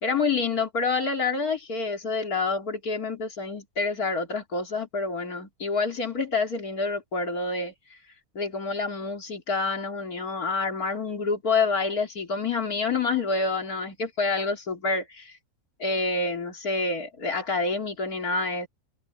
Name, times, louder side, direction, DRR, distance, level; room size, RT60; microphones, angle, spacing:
voice 1, 0.0-7.7 8.4-15.4 15.8-18.7, left 4 dB, 70° left, 3.5 m, -27 dB
omnidirectional pair, 1.6 m